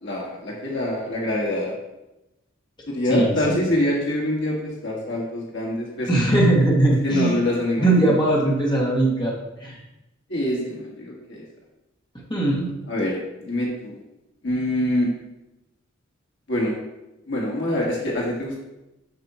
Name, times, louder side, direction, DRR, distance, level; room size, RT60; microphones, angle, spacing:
voice 1, 0.0-1.7 2.9-6.1 7.0-8.1 10.3-11.4 12.9-14.0 14.4-15.1 16.5-16.7 17.3-18.6, left 1 dB, 65° left, -3 dB, 1.6 m, -25 dB
voice 2, 3.1-3.6 6.1-7.4 7.8-9.3 9.6-9.8 12.3-12.7, right 2 dB, 20° left, -5 dB, 1.9 m, -20 dB
7.7 x 6.7 x 3.0 m, 0.93 s
head